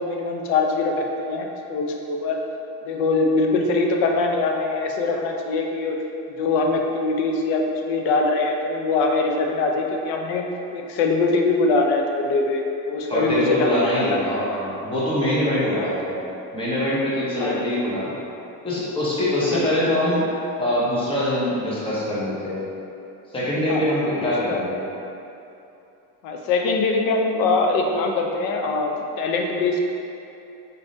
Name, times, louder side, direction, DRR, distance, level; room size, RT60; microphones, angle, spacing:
voice 1, 0.0-2.4 2.8-6.0 6.4-10.5 10.7-14.6 15.6-15.9 17.4-17.6 19.5-19.8 23.7-23.8 24.2-24.6 26.2-29.8, left 3 dB, 85° left, 2 dB, 0.6 m, -23 dB
voice 2, 13.1-16.2 16.5-18.2 18.6-20.2 20.6-22.6 23.3-24.8, left 1 dB, 15° left, -8 dB, 0.7 m, -23 dB
4.0 x 3.4 x 2.6 m, 2.9 s
cardioid pair, 155°, 36 cm